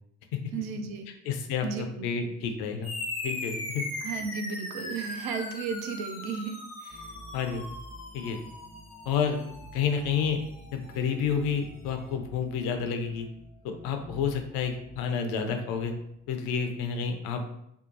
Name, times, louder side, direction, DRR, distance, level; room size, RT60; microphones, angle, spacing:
voice 1, 0.5-1.1 1.6-2.3 4.0-7.1, right 5 dB, 55° right, 6 dB, 0.5 m, -35 dB
voice 2, 1.3-2.9 3.2-3.9 7.3-7.7 8.1-8.4 9.1-9.4 9.7-10.4 10.7-13.3 13.6-15.9 16.3-17.4, left 6 dB, 55° left, 6 dB, 0.5 m, -29 dB
sound 1, 2.8-11.7, left 2 dB, 90° left, 0.8 m, -39 dB
sound 2, 6.9-16.5, equal, 20° right, 0.9 m, -50 dB
2.7 x 2.2 x 2.5 m, 0.77 s
figure-of-eight pair, 45°, 44 cm